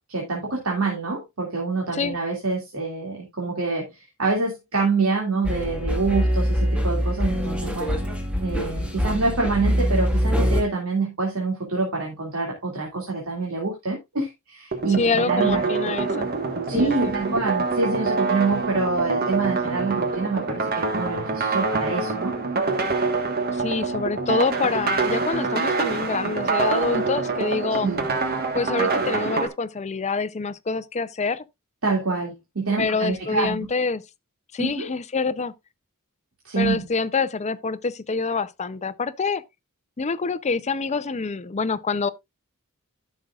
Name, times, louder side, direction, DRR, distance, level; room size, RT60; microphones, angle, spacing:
voice 1, 0.1-8.0 8.4-16.1 16.7-22.3 27.8-28.1 31.8-33.7 34.6-34.9 36.4-36.8, right 3 dB, 70° right, 2.3 m, -26 dB
sound 1, 5.4-10.6, equal, 5° right, 1.6 m, -24 dB
sound 2, 14.7-29.5, right 4 dB, 45° right, 1.4 m, -25 dB
voice 2, 15.0-16.3 16.7-17.4 23.5-27.9 28.5-31.4 32.8-34.0 34.5-35.5 36.6-39.4 40.0-42.1, left 4 dB, 30° left, 0.5 m, -26 dB
13.5 x 6.2 x 2.4 m
head